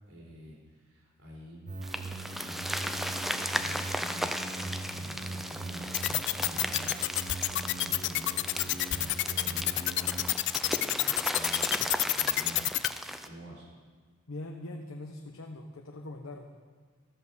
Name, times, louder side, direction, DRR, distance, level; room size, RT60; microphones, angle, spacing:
voice 1, 0.1-1.7 2.1-12.9 13.2-13.7, equal, 80° right, -3 dB, 4.0 m, -48 dB
sound 1, 1.7-10.3, right 3 dB, 40° right, 0.8 m, -41 dB
sound 2, 1.8-13.3, equal, ahead, 0.4 m, -36 dB
sound 3, 5.9-12.9, left 16 dB, 60° left, 0.4 m, -27 dB
voice 2, 14.3-16.5, left 2 dB, 85° left, 3 dB, 0.8 m, -42 dB
13.5 x 7.2 x 6.6 m, 1.5 s
head